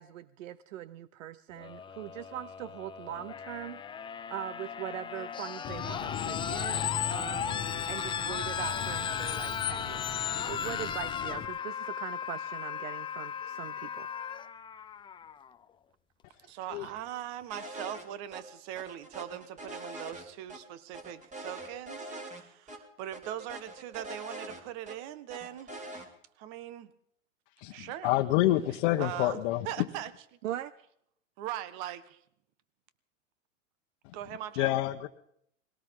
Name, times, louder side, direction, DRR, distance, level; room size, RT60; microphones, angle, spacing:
voice 1, 0.0-4.0 4.3-14.1 30.4-30.7, right 12 dB, 70° right, 17 dB, 0.8 m, -41 dB
sound 1, 1.6-15.5 16.8-16.9, left 7 dB, 10° left, 0.6 m, -37 dB
Screech, 5.6-11.5, left 10 dB, 30° left, 1.7 m, -36 dB
voice 2, 16.5-25.7 26.4-26.9 27.7-28.1 29.0-29.4 29.6-30.1 31.4-32.2 34.1-34.7, right 12 dB, 50° right, 14 dB, 1.5 m, -40 dB
sound 2, 17.5-18.0 18.3-18.4 18.8-20.6 20.9-22.4 22.7-22.8 23.1-25.0 25.3-26.1, right 1 dB, 20° right, 3.2 m, -43 dB
voice 3, 27.6-29.9 34.0-34.1 34.6-35.1, left 15 dB, 55° left, 3 dB, 1.1 m, -28 dB
21.5 x 18.0 x 3.7 m, 0.70 s
hypercardioid pair, 120°, 40 cm